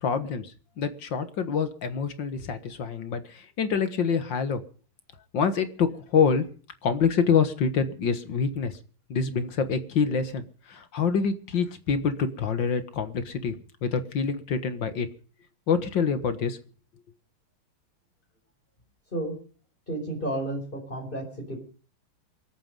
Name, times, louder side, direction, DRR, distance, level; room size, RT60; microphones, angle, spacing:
voice 1, 0.0-4.6 5.3-6.5 6.8-8.8 9.1-13.6 13.8-15.1 15.7-16.6, left 6 dB, 60° left, 11 dB, 2.1 m, -26 dB
voice 2, 19.9-21.6, right 1 dB, 20° left, 0 dB, 5.2 m, -32 dB
27.5 x 9.3 x 5.3 m, 0.41 s
omnidirectional pair, 2.3 m